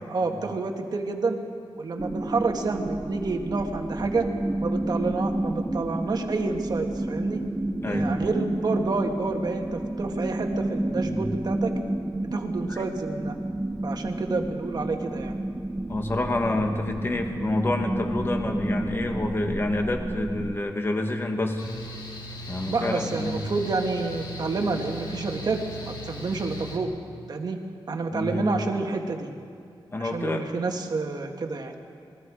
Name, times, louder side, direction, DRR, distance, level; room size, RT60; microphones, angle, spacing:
voice 1, 0.1-1.4 1.8-4.3 4.6-7.4 7.8-11.7 12.2-13.4 13.8-15.4 22.7-26.9 27.3-27.6 27.9-29.3 30.0-31.8, right 3 dB, 50° right, 4 dB, 1.6 m, -29 dB
sound 1, 2.0-20.6, right 1 dB, 10° right, 0.4 m, -30 dB
voice 2, 7.8-8.1 11.0-11.3 12.7-12.8 15.9-21.7 22.5-23.5 28.1-28.6 29.9-30.5, left 2 dB, 25° left, 4 dB, 1.7 m, -28 dB
Mechanical fan, 21.6-26.8, equal, 55° left, 2.9 m, -38 dB
28.0 x 20.5 x 4.9 m, 2.3 s
wide cardioid pair, 175°, 9 cm